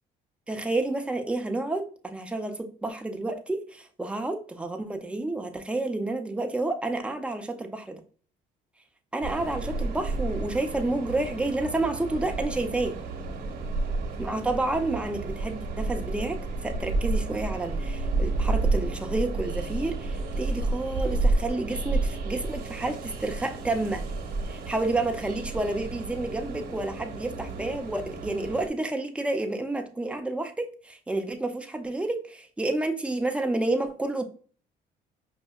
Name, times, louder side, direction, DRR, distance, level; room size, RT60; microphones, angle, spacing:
voice 1, 0.5-8.0 9.1-13.0 14.2-24.0 24.5-34.2, right 2 dB, 5° right, 5 dB, 0.5 m, -30 dB
Train, 9.2-28.7, right 3 dB, 65° right, 0.9 m, -31 dB
5.2 x 2.7 x 2.3 m, 0.41 s
cardioid pair, 110°, 17 cm